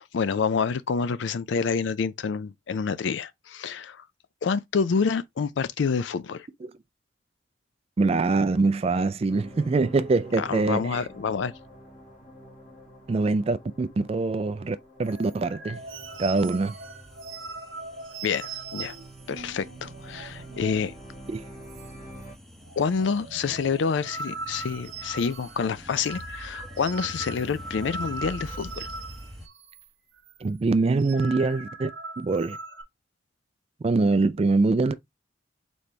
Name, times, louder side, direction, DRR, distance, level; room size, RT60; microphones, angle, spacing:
voice 1, 0.0-4.0 4.4-6.5 10.4-11.5 18.2-18.9 19.3-20.9 22.8-28.9, left 5 dB, 70° left, 0.4 m, -28 dB
voice 2, 8.0-11.0 13.1-15.8 16.2-16.8 21.3-21.4 30.4-32.6 33.8-34.9, right 3 dB, 30° right, 0.3 m, -24 dB
sound 1, 9.3-22.3, right 1 dB, 40° left, 1.5 m, -48 dB
sound 2, 15.0-21.0 21.3-21.4 21.7-22.3 22.5-29.9 30.1-30.4 30.8-32.8, right 3 dB, 75° right, 0.8 m, -40 dB
sound 3, 15.7-29.5, equal, ahead, 0.7 m, -46 dB
4.2 x 3.1 x 3.3 m
head